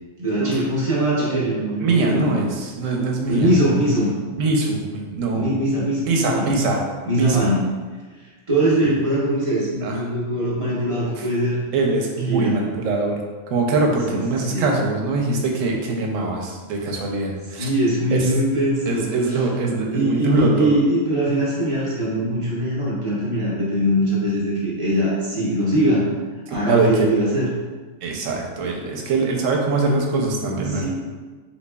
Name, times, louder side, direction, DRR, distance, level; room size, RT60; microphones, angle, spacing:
voice 1, 0.2-2.4 3.3-4.1 5.3-6.5 7.1-7.8 8.5-11.6 12.2-12.6 14.1-14.2 14.5-14.8 17.5-19.4 19.9-26.1 26.5-27.5 30.6-30.9, right 1 dB, 30° right, -7 dB, 0.8 m, -22 dB
voice 2, 1.8-3.5 4.3-5.5 6.1-6.8 7.1-7.5 9.8-10.0 11.1-11.2 11.7-13.2 13.5-17.7 18.1-18.3 18.9-20.7 26.7-27.1 28.0-30.9, right 3 dB, 90° right, 0 dB, 1.0 m, -22 dB
4.1 x 2.8 x 2.2 m, 1.4 s
omnidirectional pair, 1.3 m